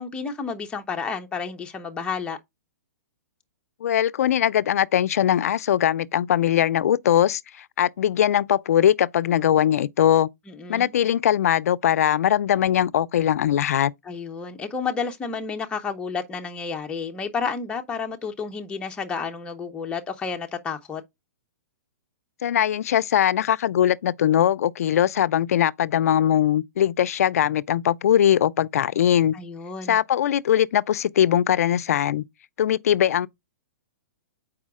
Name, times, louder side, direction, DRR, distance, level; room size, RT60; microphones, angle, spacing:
voice 1, 0.0-2.4 10.5-10.9 14.0-21.0 29.3-30.0, left 5 dB, 10° left, 0.7 m, -31 dB
voice 2, 3.8-10.3 10.7-13.9 22.4-29.3 29.9-32.2 32.6-33.3, left 10 dB, 70° left, 0.4 m, -21 dB
7.2 x 4.8 x 3.6 m
hypercardioid pair, 135°, 8 cm